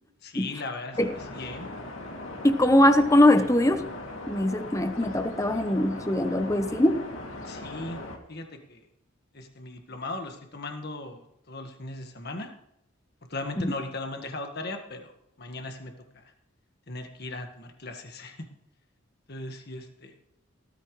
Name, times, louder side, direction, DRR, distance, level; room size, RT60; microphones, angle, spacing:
voice 1, 0.2-1.7 7.4-8.0 8.3-8.8 9.3-11.2 11.5-12.5 13.3-15.1 15.4-16.2 16.9-18.5 19.3-20.1, left 2 dB, 50° left, 4 dB, 1.7 m, -38 dB
sound 1, 0.9-8.2, left 2 dB, 70° left, 2.7 m, -39 dB
voice 2, 2.4-3.8 4.3-7.0 13.6-13.7, left 1 dB, 15° left, 9 dB, 1.0 m, -21 dB
17.0 x 14.5 x 3.3 m, 0.79 s
head